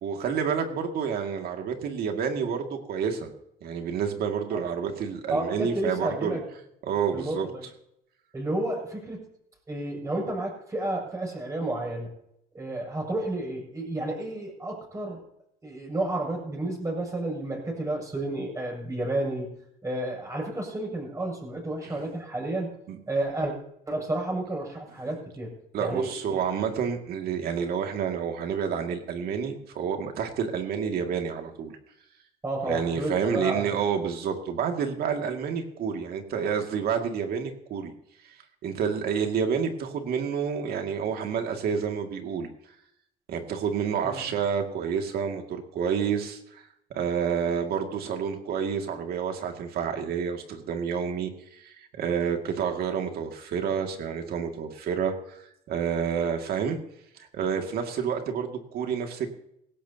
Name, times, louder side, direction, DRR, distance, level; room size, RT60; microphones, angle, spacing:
voice 1, 0.0-3.3 3.6-6.4 6.9-7.5 21.8-21.9 22.9-23.0 25.7-31.7 32.7-37.9 38.6-42.5 43.3-46.6 46.9-56.8 57.3-59.3, right 7 dB, 65° right, 4 dB, 2.3 m, -29 dB
voice 2, 5.3-6.4 7.1-7.6 8.3-9.2 9.7-12.1 12.5-15.2 15.6-19.5 19.8-22.7 23.1-23.5 23.9-25.5 25.8-26.4 32.4-33.7 44.0-44.3, right 1 dB, 20° right, -1 dB, 7.3 m, -31 dB
19.0 x 16.5 x 2.9 m, 0.76 s
cardioid pair, 110°, 17 cm